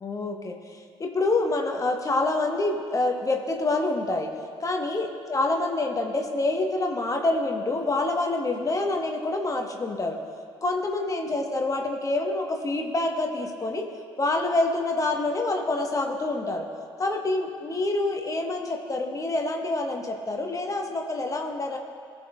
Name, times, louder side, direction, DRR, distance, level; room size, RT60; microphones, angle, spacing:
voice 1, 0.0-0.6 1.0-4.3 4.6-10.2 10.6-13.9 14.2-16.6 17.0-21.8, left 2 dB, 25° left, 2 dB, 1.4 m, -27 dB
18.5 x 6.4 x 2.5 m, 2.2 s
figure-of-eight pair, 45°, 13 cm